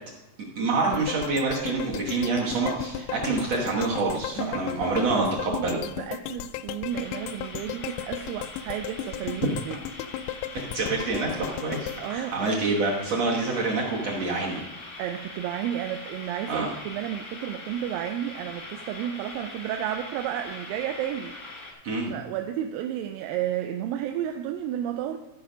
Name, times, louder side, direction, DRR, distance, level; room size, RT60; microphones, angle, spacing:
voice 1, 0.6-5.8 10.5-14.6 16.5-16.7 21.8-22.1, right 3 dB, 55° right, -3 dB, 2.0 m, -27 dB
sound 1, 0.9-13.1 13.5-13.6, left 11 dB, 85° left, 1.9 m, -36 dB
voice 2, 4.4-9.8 12.0-12.6 15.0-21.8 22.1-25.2, right 11 dB, 80° right, 5 dB, 2.3 m, -32 dB
sound 2, 6.9-21.7, left 2 dB, 55° left, 0.8 m, -42 dB
13.5 x 5.1 x 5.1 m, 1.0 s
omnidirectional pair, 4.2 m